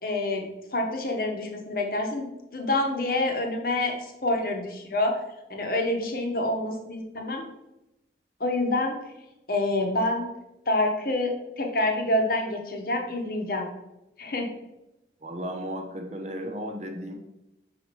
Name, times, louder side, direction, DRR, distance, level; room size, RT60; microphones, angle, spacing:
voice 1, 0.0-5.2 5.5-7.4 8.4-9.0 9.5-10.3 10.7-13.6 14.2-14.5, left 2 dB, 50° left, 2 dB, 1.0 m, -27 dB
voice 2, 15.2-17.1, equal, 40° right, 3 dB, 0.8 m, -34 dB
5.4 x 4.2 x 4.6 m, 0.92 s
head